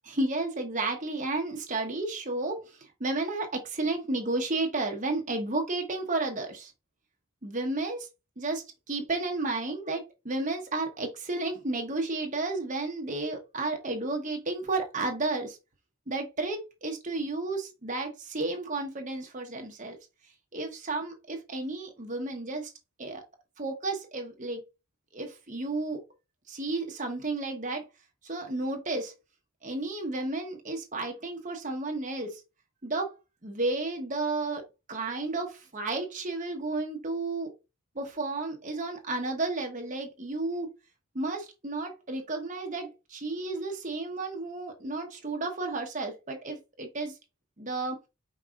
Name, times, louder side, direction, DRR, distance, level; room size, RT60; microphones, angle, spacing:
voice 1, 0.1-6.7 7.4-8.1 8.4-15.6 16.1-20.0 20.5-22.7 23.0-23.2 23.6-24.6 25.1-26.0 26.5-27.8 28.2-29.1 29.6-32.4 32.8-33.1 33.4-37.5 37.9-40.7 41.1-47.2 47.6-48.0, right 2 dB, 35° right, 1.0 m, -32 dB
5.3 x 4.0 x 2.5 m
head